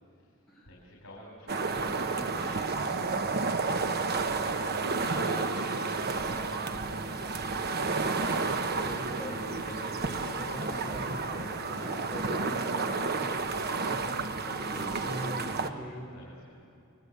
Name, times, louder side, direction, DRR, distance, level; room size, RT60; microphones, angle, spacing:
voice 1, 0.7-3.3 3.7-6.8 7.3-8.0 15.4-15.8 16.1-16.6, equal, 65° left, -2 dB, 4.7 m, -48 dB
sound 1, 1.5-15.7, right 4 dB, 50° right, 1.1 m, -31 dB
voice 2, 8.8-16.1, equal, ahead, -5 dB, 3.8 m, -42 dB
29.0 x 21.0 x 8.3 m, 2.6 s
head